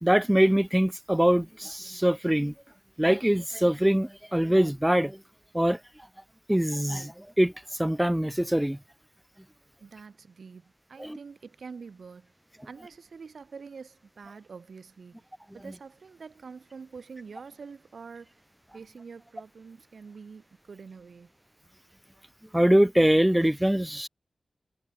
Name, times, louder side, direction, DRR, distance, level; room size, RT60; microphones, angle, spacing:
voice 1, 0.0-2.5 3.0-5.2 5.5-5.8 6.5-7.5 7.8-8.8 11.0-11.2 22.5-24.1, right 1 dB, 5° right, 0.7 m, -23 dB
voice 2, 9.8-12.3 12.6-15.3 15.5-18.4 18.7-21.3, right 5 dB, 70° right, 6.9 m, -46 dB
wide cardioid pair, 125°, 0 cm